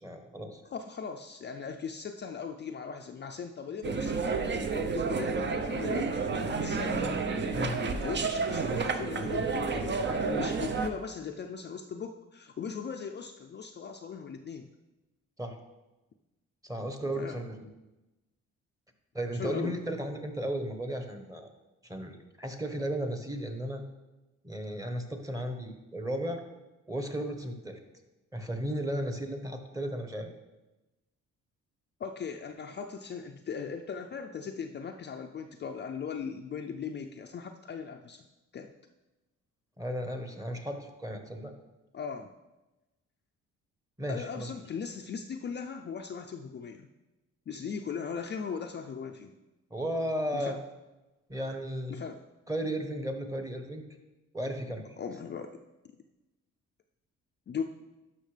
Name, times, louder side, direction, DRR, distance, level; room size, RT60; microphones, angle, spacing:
voice 1, 0.0-0.6 7.5-7.8 15.4-15.6 16.6-17.7 19.1-21.5 21.8-23.8 24.4-26.4 26.9-27.8 28.3-30.3 39.8-41.5 44.0-44.5 49.7-50.5 51.3-52.0 52.5-53.9 54.3-55.0, right 1 dB, 10° right, 5 dB, 1.1 m, -35 dB
voice 2, 0.7-7.0 8.0-14.7 17.2-17.4 19.3-19.8 32.0-38.2 38.5-38.7 41.9-42.3 44.1-46.9 47.5-49.3 50.3-50.6 51.9-52.3 55.0-55.6 57.5-57.6, left 6 dB, 35° left, 4 dB, 0.5 m, -39 dB
sound 1, 3.8-10.9, right 4 dB, 40° right, 0.7 m, -30 dB
12.0 x 5.6 x 3.3 m, 1.1 s
cardioid pair, 90°, 30 cm